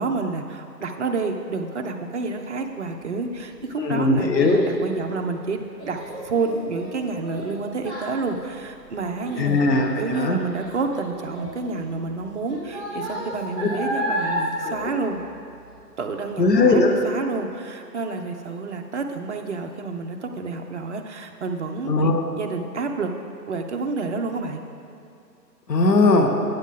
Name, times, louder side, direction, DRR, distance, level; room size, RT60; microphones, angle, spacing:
voice 1, 0.0-9.5 10.0-15.2 16.0-22.1 22.4-23.1 23.5-24.6, right 4 dB, 45° right, 4 dB, 0.7 m, -29 dB
Child speech kid speaking, 3.1-15.8 16.1-16.6 17.1-17.2, equal, 10° left, 2.2 m, -33 dB
voice 2, 3.8-4.7 9.4-10.4 13.6-13.7 14.6-14.9 16.4-16.9 21.9-22.2 25.7-26.3, left 3 dB, 75° left, 3 dB, 1.2 m, -19 dB
9.1 x 8.2 x 3.7 m, 2.6 s
hypercardioid pair, 155°, 50 cm